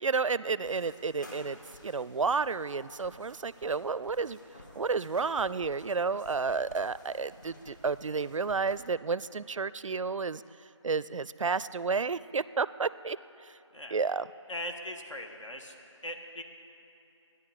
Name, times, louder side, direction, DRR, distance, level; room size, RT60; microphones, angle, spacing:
voice 1, 0.0-4.4 4.8-10.4 10.8-13.2 13.9-14.3, right 4 dB, 80° right, 17 dB, 0.4 m, -31 dB
sound 1, 0.6-8.7, left 1 dB, 40° left, 1.6 m, -54 dB
voice 2, 14.5-15.7 16.0-16.4, left 1 dB, 75° left, 4 dB, 1.4 m, -39 dB
13.5 x 10.0 x 4.9 m, 2.8 s
figure-of-eight pair, 175°, 16 cm